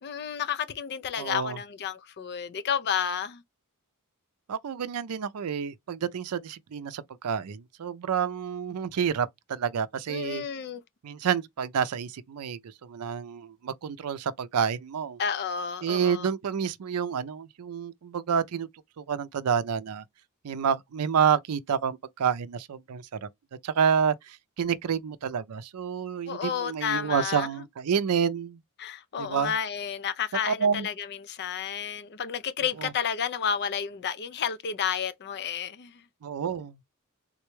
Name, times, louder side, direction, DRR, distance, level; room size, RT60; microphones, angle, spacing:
voice 1, 0.0-3.4 10.1-10.8 15.2-16.3 26.3-27.5 28.8-36.0, left 7 dB, 50° left, 0.5 m, -31 dB
voice 2, 1.2-1.6 4.5-10.4 11.0-15.2 15.8-18.7 19.0-20.0 20.4-23.3 23.6-28.6 29.2-29.5 30.5-30.9 32.8-32.9 36.2-36.8, right 7 dB, 90° right, 0.4 m, -29 dB
3.7 x 2.2 x 3.0 m
head